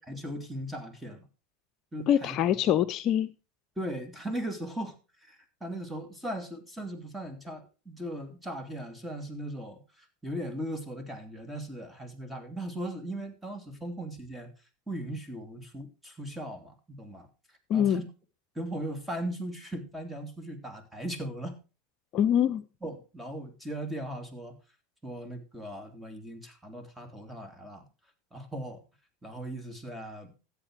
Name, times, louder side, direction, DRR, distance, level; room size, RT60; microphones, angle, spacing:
voice 1, 0.1-1.2 1.9-2.4 3.8-14.5 14.9-17.3 17.7-18.0 18.5-21.6 22.8-24.5 25.0-27.8 28.3-28.8 29.2-30.3, right 1 dB, 5° right, 7 dB, 3.1 m, -38 dB
voice 2, 2.1-3.3 17.7-18.0 22.1-22.6, left 10 dB, 50° left, 11 dB, 0.7 m, -24 dB
13.5 x 8.3 x 4.9 m, 0.32 s
hypercardioid pair, 95°, 0 cm